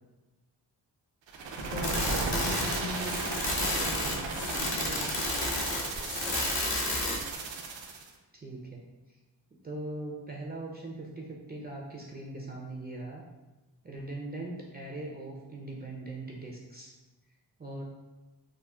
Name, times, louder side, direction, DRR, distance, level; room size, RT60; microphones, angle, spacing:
sound 1, 1.3-8.1, right 3 dB, 70° right, 0.6 m, -35 dB
voice 1, 1.6-3.2 3.5-4.1 4.5-5.2, left 1 dB, 30° left, -1 dB, 0.6 m, -40 dB
sound 2, 1.8-7.3, left 2 dB, 60° left, 0.9 m, -31 dB
voice 2, 8.3-8.8 9.1-9.2 9.6-13.2 13.8-16.9 17.6-17.8, right 2 dB, 20° right, -3 dB, 0.4 m, -40 dB
3.6 x 2.1 x 2.2 m, 1.1 s
cardioid pair, 50°, 47 cm